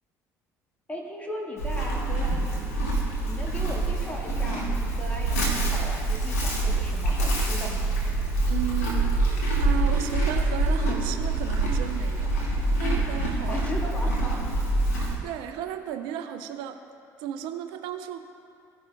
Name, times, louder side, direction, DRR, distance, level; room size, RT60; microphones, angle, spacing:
voice 1, 0.9-2.9 3.2-4.7 5.0-7.9 13.5-14.4, equal, 20° left, -2 dB, 2.0 m, -37 dB
Livestock farm animals working animals, 1.6-15.2, right 2 dB, 90° left, 1.6 m, -26 dB
voice 2, 8.5-9.2 9.6-12.4 12.8-13.6 15.0-16.8 17.2-18.2, right 10 dB, 75° right, 7 dB, 0.5 m, -34 dB
16.0 x 5.5 x 2.5 m, 2.5 s
hypercardioid pair, 65°, 8 cm